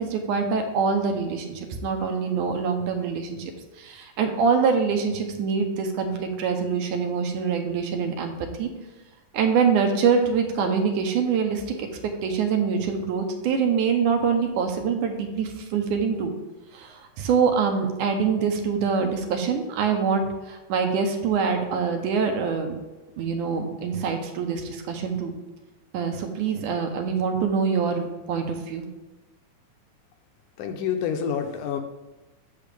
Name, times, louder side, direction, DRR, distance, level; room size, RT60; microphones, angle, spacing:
voice 1, 0.0-3.5 3.8-8.7 9.3-11.9 12.2-16.3 16.7-22.7 23.2-25.3 25.9-28.9, right 6 dB, 75° right, 4 dB, 2.3 m, -25 dB
voice 2, 30.6-31.8, left 8 dB, 80° left, 5 dB, 2.1 m, -27 dB
8.3 x 6.8 x 3.4 m, 1.1 s
omnidirectional pair, 3.8 m